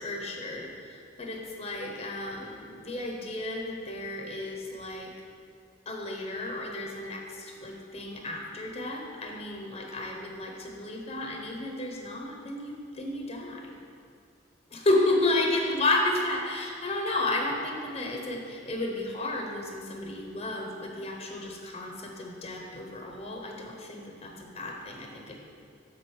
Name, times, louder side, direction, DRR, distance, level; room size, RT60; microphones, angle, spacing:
voice 1, 0.0-5.1 5.9-13.8 14.7-25.4, left 2 dB, 35° left, 1 dB, 0.7 m, -32 dB
7.8 x 3.8 x 6.2 m, 2.3 s
head